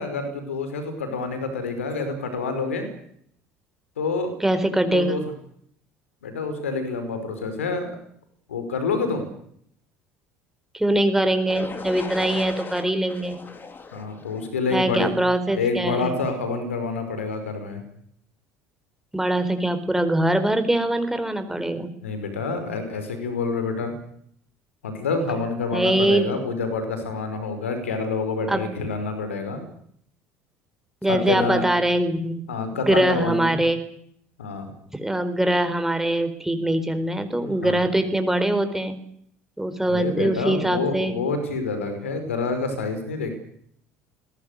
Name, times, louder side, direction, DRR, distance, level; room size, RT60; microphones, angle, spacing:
voice 1, 0.0-2.9 4.0-4.3 4.9-5.2 6.2-7.9 8.5-9.3 13.9-15.1 15.5-17.8 22.0-23.9 24.8-29.6 31.1-31.6 32.5-33.6 34.4-34.7 37.4-37.8 39.8-43.4, left 4 dB, 75° left, 8 dB, 5.2 m, -27 dB
voice 2, 4.4-5.1 10.7-13.4 14.7-16.2 19.1-21.9 25.7-26.3 28.5-28.7 31.0-32.5 32.7-33.8 34.9-39.0 39.6-41.1, right 1 dB, 5° right, 9 dB, 4.4 m, -23 dB
sound 1, 11.5-15.4, left 4 dB, 30° left, 4.0 m, -38 dB
27.0 x 21.5 x 6.8 m, 0.67 s
figure-of-eight pair, 65°, 7 cm